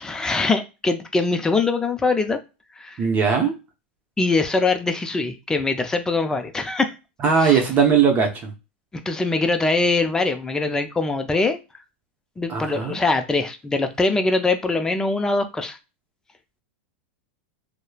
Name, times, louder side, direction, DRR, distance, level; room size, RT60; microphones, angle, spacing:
voice 1, 0.0-2.4 2.8-3.0 4.2-6.9 7.3-7.6 9.1-11.6 12.4-15.8, left 3 dB, 10° left, 0.4 m, -22 dB
voice 2, 3.0-3.5 7.2-8.5 12.5-13.0, right 6 dB, 30° right, 0.8 m, -19 dB
3.0 x 2.0 x 2.3 m
hypercardioid pair, 120°, 6 cm